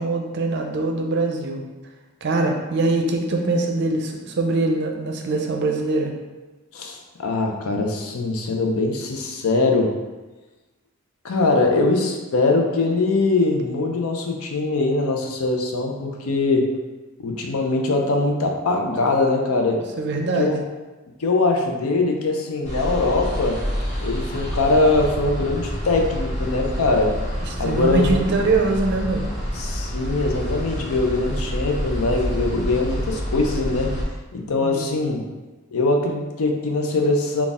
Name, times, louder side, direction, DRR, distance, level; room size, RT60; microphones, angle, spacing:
voice 1, 0.0-1.6 2.2-6.1 20.0-20.6 27.6-29.3 34.6-34.8, right 3 dB, 50° right, 2 dB, 0.5 m, -23 dB
voice 2, 6.7-9.9 11.2-16.7 17.2-19.8 20.4-20.6 21.2-23.6 24.0-27.1 27.6-28.2 29.5-33.9 34.3-35.2 35.7-37.5, left 3 dB, 75° left, 2 dB, 0.6 m, -22 dB
sound 1, 22.6-34.0, equal, 35° left, 1.2 m, -28 dB
4.0 x 2.3 x 3.6 m, 1.2 s
head